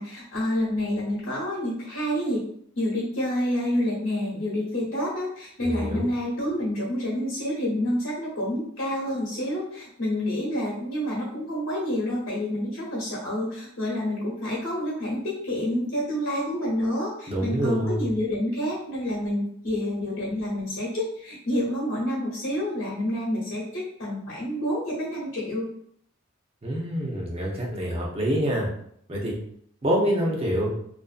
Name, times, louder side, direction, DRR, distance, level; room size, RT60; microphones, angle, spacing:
voice 1, 0.0-2.4 2.8-25.7, left 1 dB, 75° left, -7 dB, 0.9 m, -28 dB
voice 2, 5.6-6.1 17.3-18.1 26.6-28.7 29.1-29.3 29.8-30.7, equal, 30° right, -3 dB, 0.6 m, -26 dB
2.6 x 2.4 x 2.4 m, 0.66 s
head